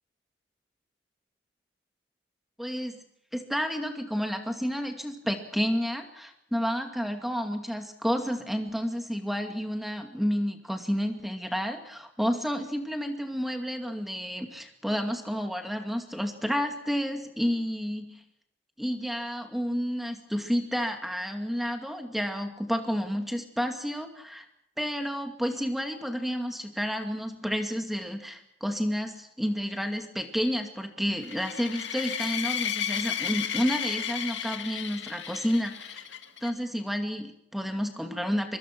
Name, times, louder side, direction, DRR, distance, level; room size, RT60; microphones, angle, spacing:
voice 1, 2.6-2.9 3.3-18.2 18.8-24.5 24.8-36.1 36.4-38.6, equal, ahead, 5 dB, 2.3 m, -30 dB
sound 1, 31.2-36.5, left 8 dB, 75° left, 2.2 m, -33 dB
24.0 x 23.5 x 6.2 m, 0.76 s
head